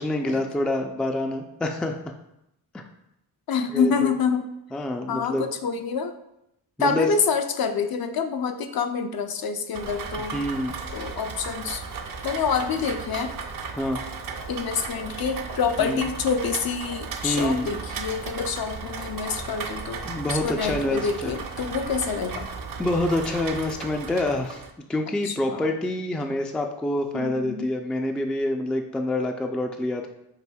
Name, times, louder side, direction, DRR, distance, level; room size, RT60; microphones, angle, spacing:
voice 1, 0.0-2.0 2.7-2.8 3.7-4.1 4.7-5.4 6.8-7.1 10.3-11.1 13.8-14.0 15.8-16.0 17.2-17.7 20.0-21.3 22.8-24.6 24.9-30.1, left 1 dB, ahead, 4 dB, 0.3 m, -27 dB
voice 2, 3.5-4.5 5.1-6.1 6.8-10.4 10.9-11.8 12.2-13.3 14.5-20.0 20.3-22.5 25.2-25.7 27.1-27.7, left 5 dB, 55° left, 7 dB, 0.5 m, -27 dB
Rain, 9.7-24.7, right 5 dB, 50° right, 0.6 m, -35 dB
5.9 x 2.6 x 2.2 m, 0.82 s
supercardioid pair, 45°, 45 cm